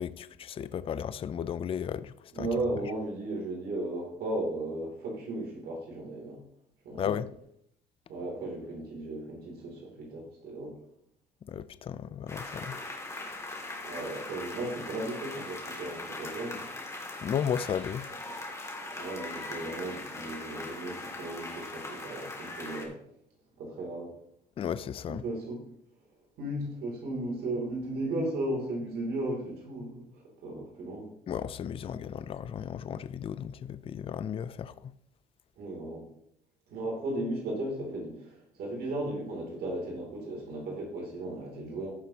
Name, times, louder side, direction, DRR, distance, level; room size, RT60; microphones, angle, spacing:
voice 1, 0.0-2.5 6.9-7.3 11.5-12.8 17.2-18.1 24.6-25.2 31.3-34.9, left 8 dB, 35° left, 0.4 m, -34 dB
voice 2, 2.3-6.4 6.8-7.0 8.1-10.8 13.8-16.7 18.9-23.0 23.6-24.1 25.1-25.6 26.4-31.1 35.6-36.1 36.7-41.9, right 1 dB, 65° right, 2.8 m, -35 dB
sound 1, 12.3-22.9, left 2 dB, 15° left, 2.0 m, -40 dB
14.0 x 5.9 x 2.9 m
cardioid pair, 110°, 17 cm